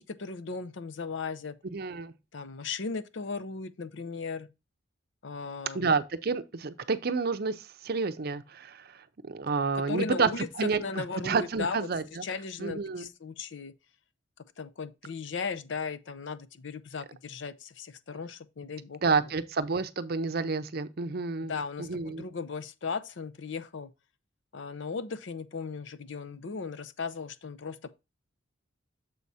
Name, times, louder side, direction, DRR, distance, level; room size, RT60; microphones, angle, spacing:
voice 1, 0.0-1.6 2.3-4.5 5.2-5.9 9.9-10.5 10.8-11.9 12.2-13.7 14.6-19.3 21.4-23.9 24.5-27.9, left 4 dB, 65° left, 0.6 m, -37 dB
voice 2, 1.7-2.1 5.7-10.3 10.6-10.8 11.2-12.2 12.6-13.1 19.0-21.5 21.8-22.2, right 4 dB, 50° right, 0.6 m, -29 dB
6.9 x 4.8 x 4.1 m
head